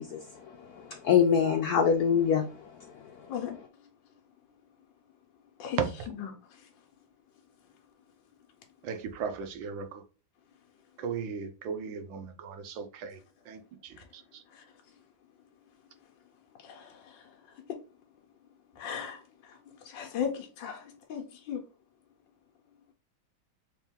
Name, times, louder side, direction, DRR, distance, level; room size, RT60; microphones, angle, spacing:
voice 1, 0.0-3.4, left 7 dB, 90° left, 0.8 m, -26 dB
voice 2, 8.8-10.0 11.0-13.2 13.5-13.6, right 6 dB, 75° right, 1.3 m, -35 dB
voice 3, 16.6-17.3 18.8-19.6 19.8-21.6, left 8 dB, 70° left, 1.4 m, -37 dB
3.6 x 2.9 x 3.5 m
omnidirectional pair, 2.2 m